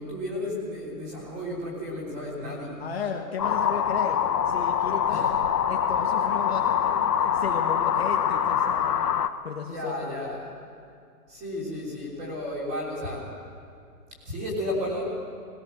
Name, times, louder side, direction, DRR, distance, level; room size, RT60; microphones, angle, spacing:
voice 1, 0.0-2.8 5.1-5.4 9.6-10.5 11.3-13.3 14.2-15.2, left 1 dB, 15° right, -4 dB, 3.4 m, -33 dB
voice 2, 2.8-5.4 5.7-9.1 9.4-10.1, left 6 dB, 40° left, 1 dB, 1.2 m, -35 dB
sound 1, 3.4-9.3, left 8 dB, 85° left, 1.2 m, -24 dB
20.0 x 18.0 x 7.6 m, 2.4 s
hypercardioid pair, 175°, 47 cm